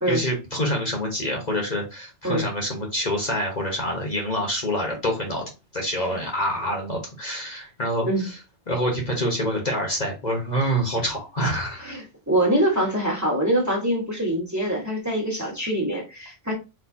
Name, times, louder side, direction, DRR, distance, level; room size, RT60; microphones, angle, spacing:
voice 1, 0.1-5.4 5.7-8.4 8.7-11.9, equal, 40° left, 0 dB, 1.1 m, -26 dB
voice 2, 11.8-16.5, right 1 dB, 15° right, 0 dB, 1.4 m, -24 dB
4.3 x 3.4 x 2.7 m, 0.27 s
omnidirectional pair, 1.2 m